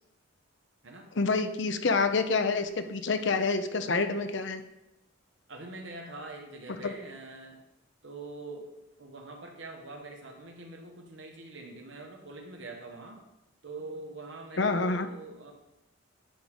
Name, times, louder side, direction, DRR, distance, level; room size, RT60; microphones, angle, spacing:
voice 1, 1.2-4.6 6.8-6.9 14.6-15.1, left 4 dB, 55° left, 8 dB, 0.6 m, -27 dB
voice 2, 5.5-7.6 8.0-8.7 9.0-13.2 13.6-15.5, right 2 dB, 60° right, 2 dB, 1.2 m, -44 dB
10.5 x 3.6 x 5.0 m, 0.93 s
head